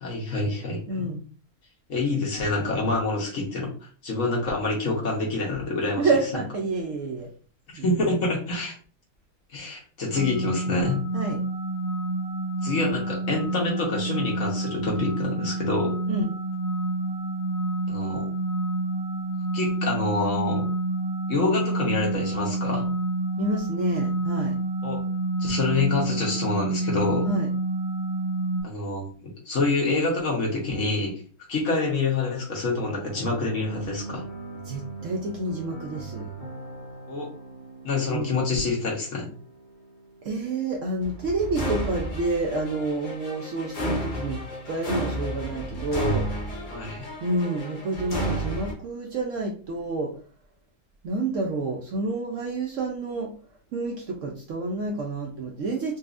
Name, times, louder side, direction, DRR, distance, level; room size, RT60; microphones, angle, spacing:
voice 1, 0.0-1.1 1.9-6.1 7.8-8.7 9.5-11.0 12.6-16.0 17.9-18.2 19.5-20.6 21.3-22.8 24.8-25.0 25.4-27.3 28.6-31.1 31.5-34.2 37.1-37.3 37.8-39.3 46.7-47.1, left 3 dB, 55° left, -3 dB, 1.2 m, -27 dB
voice 2, 0.9-1.2 6.0-7.3 7.8-7.9 11.1-11.4 16.1-16.3 23.4-24.6 27.2-27.5 34.6-36.3 38.1-38.3 40.2-46.3 47.2-50.1 51.0-53.3 53.7-56.0, right 2 dB, 65° right, 0 dB, 0.8 m, -29 dB
sound 1, 10.1-28.6, right 2 dB, 35° right, 0.6 m, -28 dB
sound 2, 32.7-48.7, equal, 40° left, 0.8 m, -34 dB
3.9 x 2.4 x 2.4 m, 0.41 s
omnidirectional pair, 1.7 m